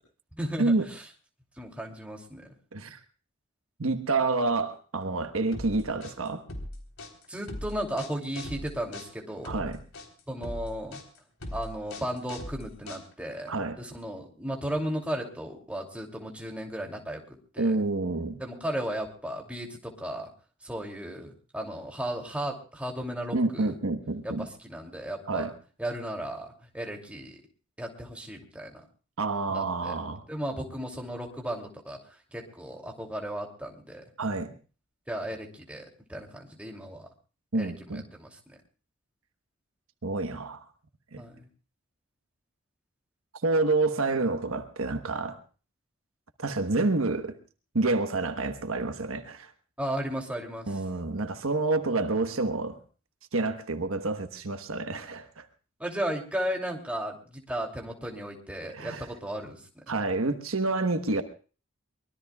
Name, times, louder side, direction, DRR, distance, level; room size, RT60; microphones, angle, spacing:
voice 1, 0.4-1.0 1.6-2.4 7.3-9.6 10.3-11.0 11.5-13.5 13.8-17.2 17.5-17.7 18.4-20.3 20.6-23.7 24.2-25.5 25.8-27.3 27.8-28.7 29.5-29.9 30.3-32.0 32.3-34.0 35.1-37.1 37.5-38.3 41.2-41.4 49.8-50.8 55.8-59.6, right 1 dB, 5° right, 2.7 m, -35 dB
voice 2, 3.8-6.4 9.4-9.8 13.5-13.8 17.6-18.4 23.3-24.5 25.3-25.5 29.2-30.2 34.2-34.5 37.5-38.0 40.0-40.6 41.1-41.2 43.4-45.4 46.4-47.4 47.7-49.5 50.7-52.8 53.3-55.4 58.7-59.1 59.9-61.2, right 3 dB, 75° right, 1.2 m, -28 dB
sound 1, 5.5-13.4, left 1 dB, 80° left, 3.7 m, -40 dB
24.0 x 21.5 x 2.3 m
head